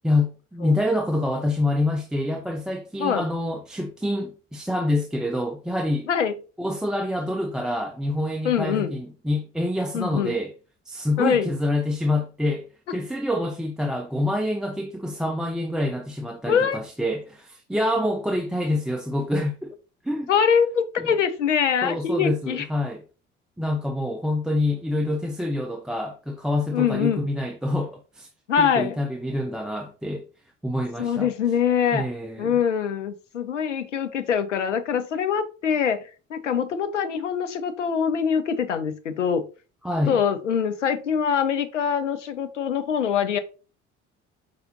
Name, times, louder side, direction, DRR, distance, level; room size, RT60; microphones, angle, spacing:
voice 1, 0.0-6.1 6.6-10.5 10.9-12.7 12.9-19.7 20.0-20.3 21.0-21.2 21.8-23.0 23.6-28.3 28.6-30.3 30.6-31.3 31.9-32.6 39.8-40.2, left 1 dB, ahead, 0.4 m, -26 dB
voice 2, 8.4-8.9 9.9-10.4 11.2-11.5 16.4-16.8 20.3-22.7 26.7-27.3 28.5-29.0 31.0-32.1 32.4-36.0 36.3-39.4 40.1-43.4, left 7 dB, 85° left, 0.6 m, -23 dB
5.3 x 2.7 x 2.7 m
figure-of-eight pair, 50°, 36 cm